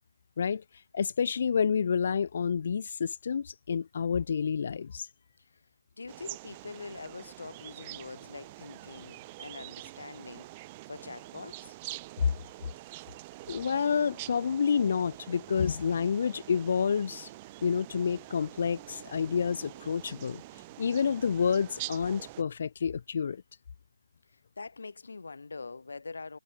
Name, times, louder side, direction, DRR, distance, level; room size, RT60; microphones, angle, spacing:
voice 1, 0.9-5.1 13.5-17.3 17.6-20.4 20.8-23.4, left 6 dB, 30° left, 1.0 m, -29 dB
voice 2, 6.0-11.8 24.3-26.4, left 4 dB, 50° left, 4.0 m, -44 dB
sound 1, 6.1-22.4, right 20 dB, 10° right, 2.7 m, -46 dB
figure-of-eight pair, 180°, 0 cm